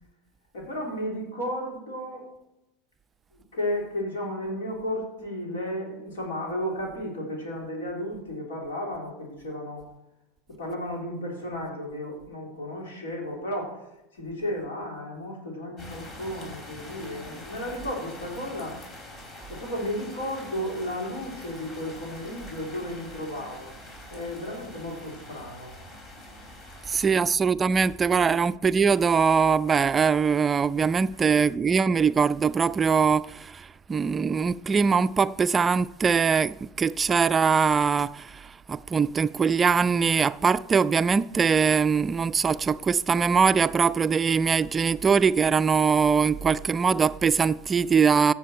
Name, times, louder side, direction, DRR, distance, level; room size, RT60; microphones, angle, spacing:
voice 1, 0.5-2.3 3.3-9.9 10.5-13.8 14.1-18.8 19.5-23.7 24.1-25.8 26.9-27.1 31.1-31.2, equal, 85° left, 3.7 m, -33 dB
sound 1, 15.8-27.1, left 1 dB, 40° left, 3.9 m, -45 dB
voice 2, 26.9-48.3, right 6 dB, 25° right, 0.3 m, -22 dB
15.5 x 7.1 x 4.5 m
hypercardioid pair, 90°, 0 cm